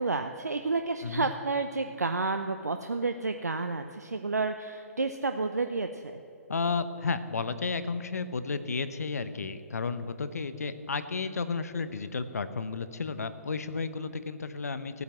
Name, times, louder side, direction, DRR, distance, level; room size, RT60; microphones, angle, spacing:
voice 1, 0.0-6.2, right 3 dB, 85° right, 7 dB, 0.6 m, -30 dB
voice 2, 6.5-15.0, left 4 dB, 75° left, 12 dB, 0.9 m, -32 dB
15.5 x 9.4 x 7.3 m, 2.9 s
figure-of-eight pair, 125°, 9 cm